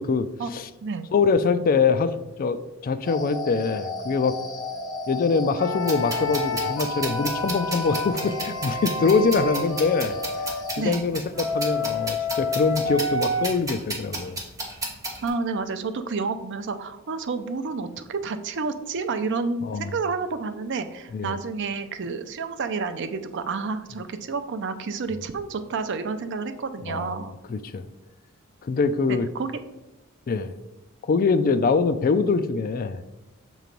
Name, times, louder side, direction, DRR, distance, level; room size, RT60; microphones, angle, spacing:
voice 1, 1.1-2.1 2.4-4.4 5.1-10.2 10.8-14.4 19.6-19.9 21.1-21.3 26.8-27.2 27.5-27.8 28.6-29.3 30.3-30.5 31.1-33.0, left 4 dB, 45° left, 12 dB, 0.3 m, -23 dB
sound 1, 3.1-10.9, left 3 dB, 20° left, 1.0 m, -35 dB
sound 2, 5.6-10.6 11.3-13.5, left 2 dB, 80° left, 1.1 m, -29 dB
sound 3, 5.8-15.3, right 2 dB, 15° right, 1.1 m, -34 dB
voice 2, 15.2-27.3 29.1-29.5, right 4 dB, 60° right, 9 dB, 0.5 m, -30 dB
6.6 x 3.1 x 5.2 m, 0.98 s
head